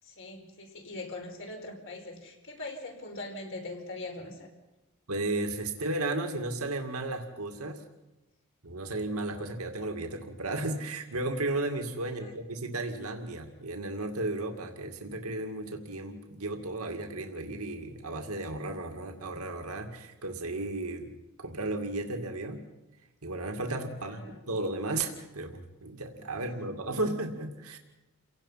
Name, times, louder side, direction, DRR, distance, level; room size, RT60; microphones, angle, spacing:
voice 1, 0.0-4.5 12.0-12.3 24.0-24.5, left 2 dB, 60° left, 2 dB, 5.1 m, -42 dB
voice 2, 5.1-7.8 8.6-21.1 21.4-22.7 23.2-27.8, right 2 dB, 75° right, 5 dB, 2.3 m, -34 dB
29.5 x 17.5 x 5.8 m, 1.0 s
head